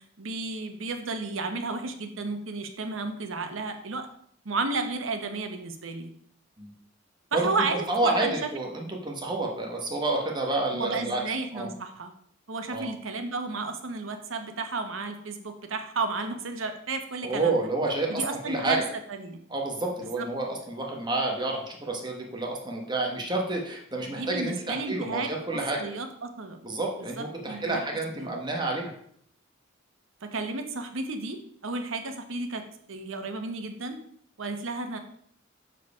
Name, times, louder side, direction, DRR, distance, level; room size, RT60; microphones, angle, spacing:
voice 1, 0.2-4.1 4.4-6.1 7.3-8.3 10.7-12.1 12.5-17.7 18.1-18.8 19.1-19.4 20.2-20.3 24.1-25.3 25.8-26.6 27.2-27.8 28.2-28.4 30.2-32.6 32.9-34.0 34.4-35.0, right 3 dB, 90° right, 6 dB, 1.0 m, -32 dB
voice 2, 7.9-11.2 11.5-11.7 12.7-12.9 17.2-18.9 19.5-25.9 26.6-28.9, right 2 dB, 20° right, 0 dB, 1.1 m, -29 dB
6.8 x 4.6 x 4.8 m, 0.66 s
head